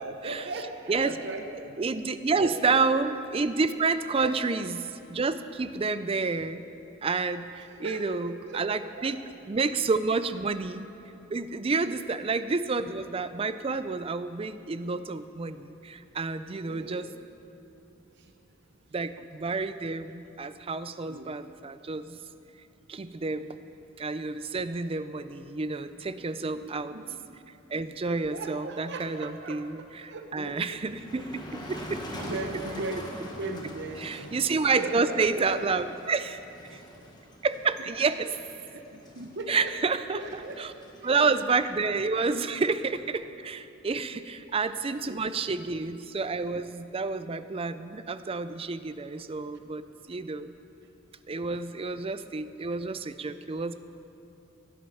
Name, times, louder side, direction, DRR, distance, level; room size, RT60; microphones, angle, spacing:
voice 1, 0.0-1.8 2.3-2.8 4.2-4.3 7.7-8.6 9.0-9.1 11.9-12.0 16.6-17.0 21.1-21.3 26.6-27.2 28.0-30.6 32.1-34.4 34.7-35.8 37.8-37.9 38.7-39.7 40.1-40.6 41.0-41.2 41.9-42.4 44.1-44.2 45.0-45.3, right 2 dB, 55° right, 5 dB, 0.9 m, -38 dB
voice 2, 1.8-6.6 7.0-9.2 9.5-10.9 11.3-17.1 18.9-22.2 22.9-23.6 24.0-27.0 27.7-32.0 34.0-36.4 37.4-38.4 39.5-40.7 41.0-50.6 51.3-53.7, right 4 dB, 30° right, 12 dB, 0.4 m, -29 dB
Motor vehicle (road), 30.5-43.1, equal, 20° left, 1.5 m, -44 dB
17.0 x 10.0 x 5.7 m, 2.8 s
head